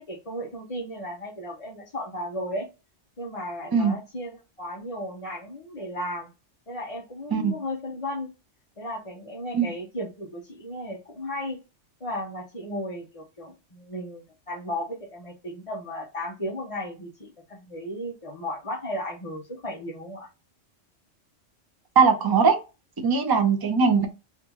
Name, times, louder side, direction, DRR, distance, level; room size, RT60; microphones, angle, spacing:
voice 1, 0.0-2.7 3.2-6.3 6.7-8.3 8.8-11.6 12.0-20.3, left 1 dB, 30° left, 0.8 m, -35 dB
voice 2, 22.0-22.6 23.0-24.1, right 5 dB, 30° right, 0.4 m, -20 dB
3.7 x 2.4 x 3.0 m
omnidirectional pair, 1.2 m